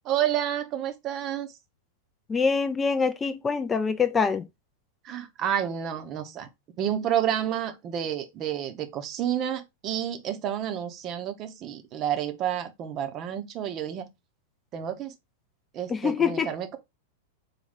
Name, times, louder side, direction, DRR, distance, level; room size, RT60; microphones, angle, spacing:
voice 1, 0.0-1.5 5.0-6.5 6.8-14.1 14.7-15.1 15.7-16.8, right 10 dB, 35° right, 0.7 m, -30 dB
voice 2, 2.3-4.5 15.9-16.5, left 5 dB, 20° left, 0.3 m, -25 dB
4.1 x 2.3 x 3.4 m
figure-of-eight pair, 95°, 0 cm